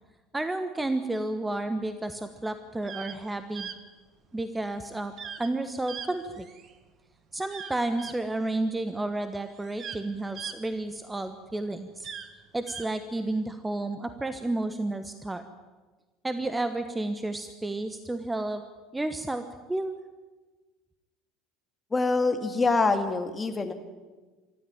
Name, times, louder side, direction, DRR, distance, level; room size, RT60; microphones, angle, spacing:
voice 1, 0.3-3.7 4.3-5.1 5.4-6.5 7.3-12.1 12.5-15.5 16.2-18.6 18.9-19.9, right 2 dB, 10° right, 10 dB, 1.3 m, -31 dB
sound 1, 2.7-3.2 3.5-3.8 5.2-5.5 5.9-6.7 7.5-8.2 9.1-9.2 9.5-11.3 11.9-12.9, right 7 dB, 40° right, 1.7 m, -40 dB
voice 2, 21.9-23.7, left 3 dB, 20° left, 6 dB, 2.3 m, -25 dB
24.5 x 13.5 x 9.2 m, 1.3 s
figure-of-eight pair, 65°, 0 cm